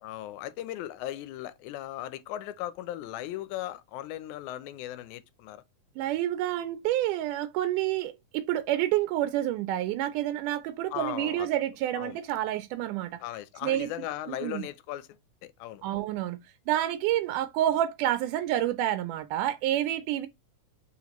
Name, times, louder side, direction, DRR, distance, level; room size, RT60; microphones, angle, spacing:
voice 1, 0.0-5.6 10.9-11.5 12.0-12.2 13.2-15.1 15.4-16.1, left 13 dB, 80° left, 1.9 m, -37 dB
voice 2, 6.0-13.2 13.6-13.9 14.3-14.7 15.8-16.4 16.7-20.3, right 13 dB, 85° right, 2.1 m, -28 dB
4.3 x 4.2 x 2.9 m
omnidirectional pair, 3.6 m